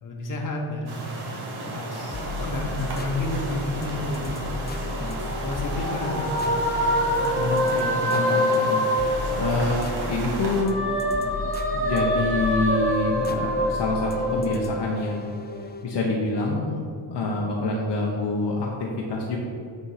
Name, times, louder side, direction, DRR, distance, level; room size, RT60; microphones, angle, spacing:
voice 1, 0.0-1.2 1.5-4.4 5.1-6.8 9.3-9.6, left 2 dB, 40° left, 0 dB, 1.4 m, -31 dB
sound 1, 0.9-10.6, right 1 dB, 55° right, 1.7 m, -33 dB
sound 2, 2.1-15.9, left 2 dB, 25° left, 0.4 m, -35 dB
sound 3, 5.0-10.0 10.4-15.2, equal, 25° right, 1.6 m, -26 dB
voice 2, 7.4-8.8 9.3-10.8 11.1-11.3 11.7-15.3 15.8-16.8 17.1-19.4, left 2 dB, 55° left, -2 dB, 1.1 m, -27 dB
8.8 x 4.6 x 5.7 m, 2.4 s
wide cardioid pair, 150°, 48 cm